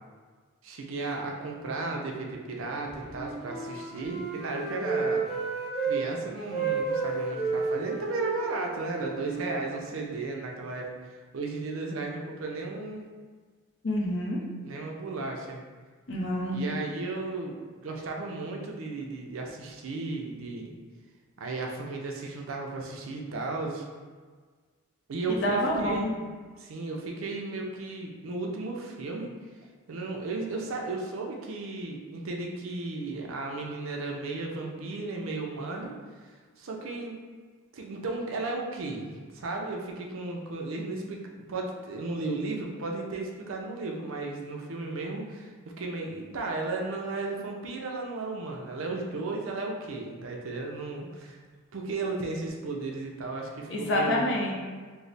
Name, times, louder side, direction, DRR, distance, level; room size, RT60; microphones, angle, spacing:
voice 1, 0.6-5.3 5.8-13.1 14.6-15.6 16.5-20.7 21.4-23.9 25.1-26.3 26.6-29.3 29.9-35.9 36.6-37.2 37.7-51.4 51.7-54.3, right 3 dB, 70° right, 0 dB, 0.5 m, -34 dB
Wind instrument woodwind instrument, 3.0-6.0 6.5-10.3, right 4 dB, ahead, 0.6 m, -32 dB
voice 2, 13.8-14.4 16.1-16.6 25.3-26.1 53.7-54.5, left 1 dB, 55° left, -2 dB, 0.6 m, -27 dB
3.1 x 2.0 x 3.9 m, 1.5 s
head